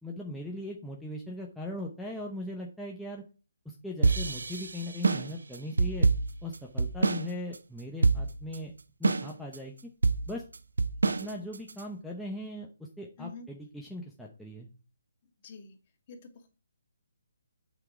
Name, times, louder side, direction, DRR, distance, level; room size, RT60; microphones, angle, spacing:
voice 1, 0.0-3.2 3.6-6.1 6.4-8.7 9.0-9.7 10.3-10.4 11.2-12.7 13.0-14.7, left 1 dB, ahead, -2 dB, 0.9 m, -39 dB
sound 1, 4.0-7.3 7.5-7.6 8.0-8.6 9.0-9.6 10.0-11.8, right 4 dB, 85° right, 0.8 m, -26 dB
voice 2, 15.4-15.7 16.1-16.5, left 4 dB, 35° left, 3 dB, 2.3 m, -46 dB
7.8 x 6.1 x 5.0 m, 0.33 s
hypercardioid pair, 160°, 0 cm